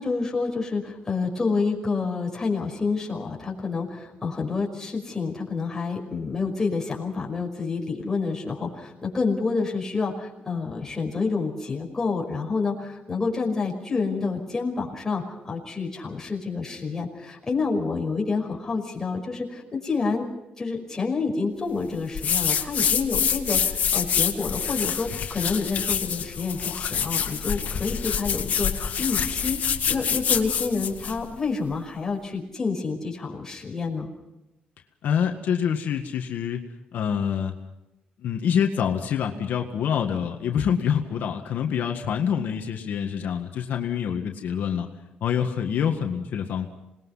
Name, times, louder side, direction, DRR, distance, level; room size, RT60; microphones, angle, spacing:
voice 1, 0.0-20.2 20.6-29.6 29.9-34.1, left 4 dB, 15° left, -1 dB, 5.5 m, -28 dB
sound 1, 22.1-31.2, left 8 dB, 55° left, 2.0 m, -26 dB
voice 2, 35.0-36.6 36.9-37.5 38.2-44.9 45.2-46.7, left 8 dB, 75° left, 4 dB, 1.8 m, -26 dB
27.0 x 20.5 x 5.7 m, 0.95 s
cardioid pair, 135°, 3 cm